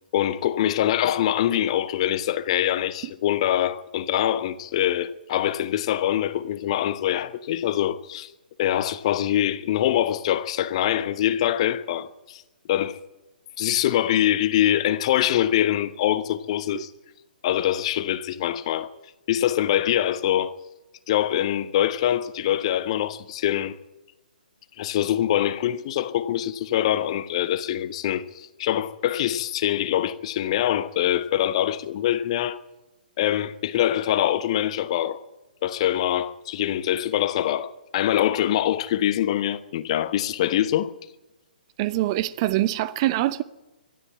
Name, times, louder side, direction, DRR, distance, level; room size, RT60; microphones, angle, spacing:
voice 1, 0.1-8.3 8.6-12.4 12.7-13.0 13.6-16.9 17.4-18.9 19.3-20.5 21.1-23.8 24.8-32.6 33.2-35.2 35.6-40.9, left 11 dB, 35° left, 1.1 m, -24 dB
voice 2, 41.8-43.4, right 15 dB, 30° right, 0.8 m, -24 dB
23.0 x 13.0 x 9.5 m
figure-of-eight pair, 125°, 5 cm